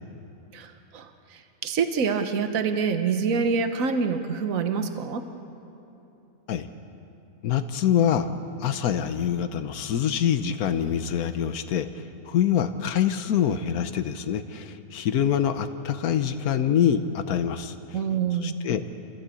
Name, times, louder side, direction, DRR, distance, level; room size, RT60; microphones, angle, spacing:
voice 1, 0.5-5.2 17.9-18.6, right 5 dB, 70° right, 7 dB, 1.5 m, -26 dB
voice 2, 7.4-8.3 8.6-18.0 18.4-18.9, left 9 dB, 90° left, 10 dB, 1.3 m, -25 dB
27.5 x 15.0 x 8.5 m, 3.0 s
omnidirectional pair, 1.5 m